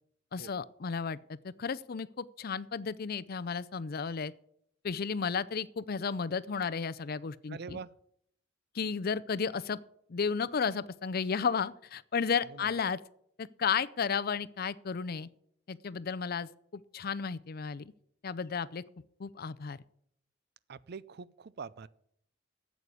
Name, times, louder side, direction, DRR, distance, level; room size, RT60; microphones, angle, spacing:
voice 1, 0.3-4.3 4.8-7.8 8.7-9.8 10.1-13.0 13.4-15.3 15.7-17.9 18.2-18.8 19.2-19.8, left 6 dB, 50° left, 17 dB, 0.5 m, -33 dB
voice 2, 7.5-7.9 12.5-12.7 20.7-21.9, right 5 dB, 55° right, 20 dB, 0.5 m, -44 dB
9.1 x 8.2 x 8.5 m, 0.71 s
head